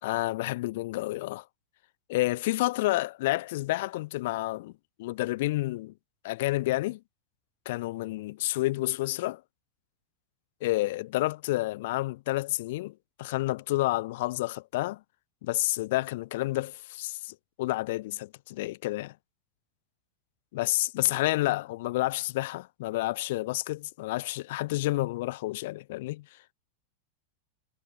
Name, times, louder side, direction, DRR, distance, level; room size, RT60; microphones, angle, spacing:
voice 1, 0.0-1.4 2.1-4.7 5.0-5.9 6.2-7.0 7.7-9.4 10.6-12.9 13.2-15.0 15.4-19.1 20.5-26.2, left 18 dB, 50° left, 0.6 m, -29 dB
figure-of-eight pair, 90°, 0 cm